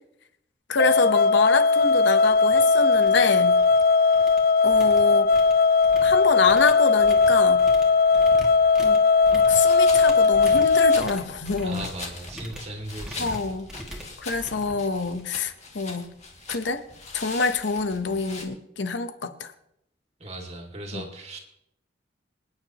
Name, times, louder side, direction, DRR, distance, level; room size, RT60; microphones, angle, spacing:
voice 1, 0.7-3.6 4.6-5.3 6.0-7.7 8.8-9.0 9.3-11.9 13.2-13.7 14.2-16.1 16.5-16.8 17.1-19.5 20.9-21.0, left 4 dB, 70° left, 10 dB, 1.0 m, -26 dB
sound 1, 0.8-11.0, left 4 dB, 55° left, 0.4 m, -18 dB
sound 2, 1.3-1.4 1.8-2.0 2.3-2.6 2.9-3.8 4.1-15.4, equal, 5° right, 2.3 m, -42 dB
sound 3, 9.5-18.4, left 4 dB, 40° left, 2.2 m, -42 dB
voice 2, 11.6-13.4 20.2-21.4, right 1 dB, 35° right, 2 dB, 2.4 m, -37 dB
26.5 x 9.7 x 3.0 m, 0.78 s
head